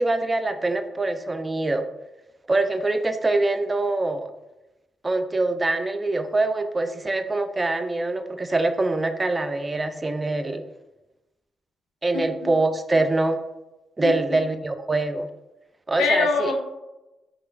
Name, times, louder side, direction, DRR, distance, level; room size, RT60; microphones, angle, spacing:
voice 1, 0.0-1.8 2.5-4.3 5.0-10.6 12.0-13.4 14.0-15.3 15.9-16.5, right 2 dB, 30° right, 9 dB, 0.3 m, -24 dB
voice 2, 14.0-14.4 16.0-16.6, left 4 dB, 80° left, 3 dB, 0.4 m, -24 dB
3.5 x 2.4 x 2.4 m, 0.98 s
hypercardioid pair, 40°, 0 cm